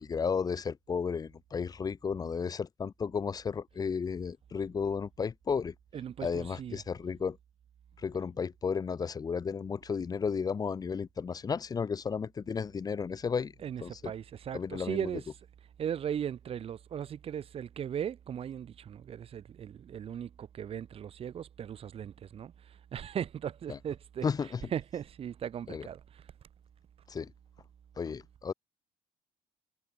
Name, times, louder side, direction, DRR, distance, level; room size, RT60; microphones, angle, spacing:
voice 1, 0.0-5.7 6.2-7.4 8.0-13.5 13.8-13.9 14.5-15.0 24.2-24.6 25.7-25.8 27.1-27.3 28.0-28.5, left 6 dB, 30° left, 1.2 m, -33 dB
voice 2, 5.9-6.8 13.6-15.3 15.8-26.3, right 9 dB, 50° right, 3.2 m, -38 dB
cardioid pair, 115°, 13 cm